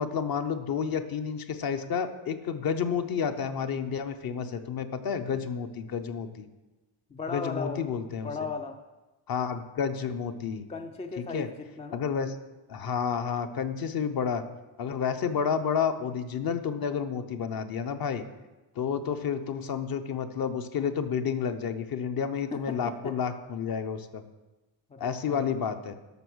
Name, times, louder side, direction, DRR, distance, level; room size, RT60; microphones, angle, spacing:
voice 1, 0.0-6.5 7.3-8.3 9.3-10.6 11.3-11.5 11.9-12.3 12.7-14.4 14.8-18.2 18.8-24.2 25.0-25.9, left 7 dB, 45° left, 9 dB, 0.9 m, -30 dB
voice 2, 7.1-7.9 8.2-8.8 10.7-12.0 22.5-23.2 24.9-25.7, left 4 dB, 15° left, 7 dB, 0.3 m, -37 dB
12.0 x 6.4 x 6.2 m, 1.1 s
cardioid pair, 170°, 50 cm